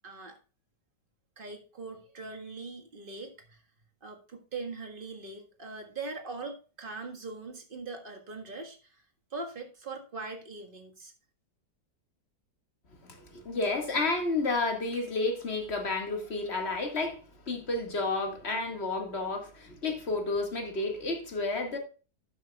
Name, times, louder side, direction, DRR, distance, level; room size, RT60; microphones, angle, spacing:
voice 1, 0.0-0.4 1.4-3.6 4.0-9.0 9.3-11.1, right 3 dB, 30° right, 1.7 m, -41 dB
voice 2, 13.0-21.8, left 3 dB, 35° left, 2.1 m, -31 dB
12.0 x 9.2 x 2.3 m
omnidirectional pair, 1.9 m